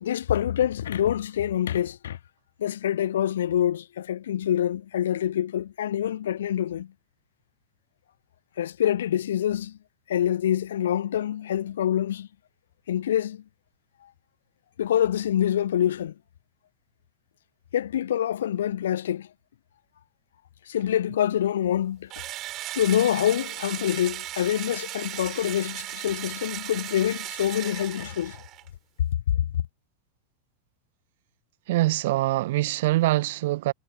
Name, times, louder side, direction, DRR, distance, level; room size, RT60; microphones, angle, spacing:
voice 1, 0.0-2.2 2.6-6.9 8.6-9.7 10.1-12.3 12.9-13.4 14.8-16.1 17.7-19.3 20.7-22.1 22.8-28.4, left 10 dB, 60° left, 1.0 m, -26 dB
Engine / Drill, 22.1-28.7, right 15 dB, 35° right, 6.6 m, -36 dB
voice 2, 31.7-33.7, right 17 dB, 55° right, 1.0 m, -24 dB
figure-of-eight pair, 90°, 0 cm